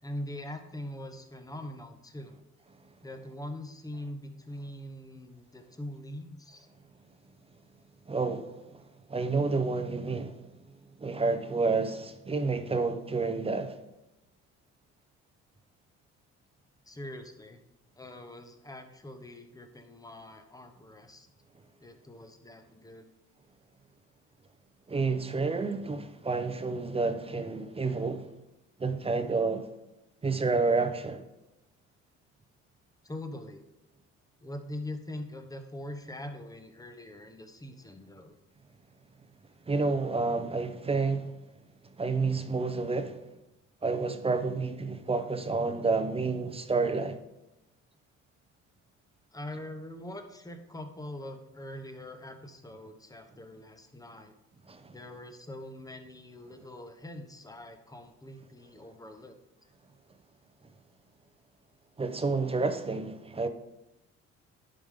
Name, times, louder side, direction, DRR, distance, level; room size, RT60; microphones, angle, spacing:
voice 1, 0.0-2.3 3.0-6.7 16.9-17.6 18.0-21.3 21.8-23.1 33.0-33.6 34.4-38.4 49.3-54.3 54.9-59.4, left 1 dB, 10° left, 1.0 m, -43 dB
voice 2, 8.1-8.5 9.1-10.4 11.0-13.8 24.9-28.3 28.8-29.6 30.2-31.2 39.7-41.3 42.0-43.2 43.8-47.2 54.7-54.9 62.0-63.5, right 4 dB, 20° right, 0.8 m, -29 dB
10.5 x 5.1 x 3.7 m
cardioid pair, 90°, 30 cm